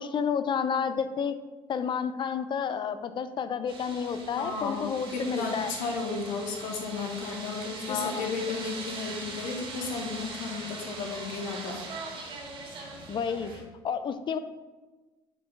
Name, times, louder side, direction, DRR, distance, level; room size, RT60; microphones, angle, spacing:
voice 1, 0.0-1.3 1.7-5.7 7.9-8.3 13.1-13.5 13.8-14.4, left 7 dB, 35° left, 12 dB, 0.5 m, -30 dB
sound 1, 3.7-13.6, right 3 dB, 40° right, 1.9 m, -41 dB
voice 2, 4.4-11.8, left 4 dB, 75° left, 1 dB, 1.2 m, -34 dB
6.4 x 4.5 x 3.3 m, 1.2 s
supercardioid pair, 85°, 13 cm